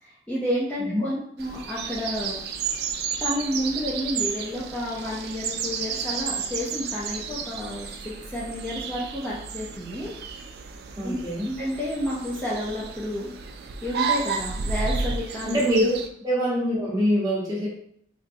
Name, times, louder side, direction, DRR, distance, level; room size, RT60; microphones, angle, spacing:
voice 1, 0.0-2.4 3.2-10.1 11.0-11.2 11.4-13.3 13.8-15.6, left 1 dB, 10° left, -8 dB, 0.5 m, -30 dB
sound 1, 1.4-16.1, right 5 dB, 60° right, 0.3 m, -32 dB
voice 2, 11.0-11.5 15.4-15.9 16.2-17.7, equal, 20° right, -7 dB, 1.1 m, -24 dB
3.9 x 2.1 x 2.6 m, 0.67 s
head